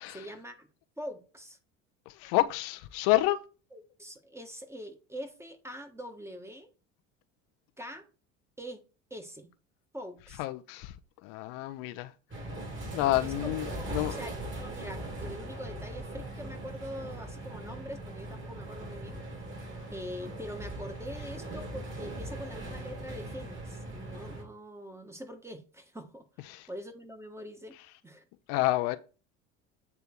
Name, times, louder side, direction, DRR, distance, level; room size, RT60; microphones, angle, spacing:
voice 1, 0.1-0.7 1.0-1.6 3.7-6.7 7.8-8.1 8.6-8.8 9.1-9.5 9.9-10.5 13.2-19.2 19.9-27.8 28.0-28.2, equal, 5° right, 1.3 m, -44 dB
voice 2, 2.2-3.4 10.4-10.9 11.2-12.1 12.9-14.1 26.5-26.6 28.5-29.0, left 17 dB, 70° left, 0.7 m, -28 dB
sound 1, 12.3-24.4, right 1 dB, 35° right, 2.7 m, -40 dB
8.2 x 3.5 x 4.4 m
hypercardioid pair, 80°, 36 cm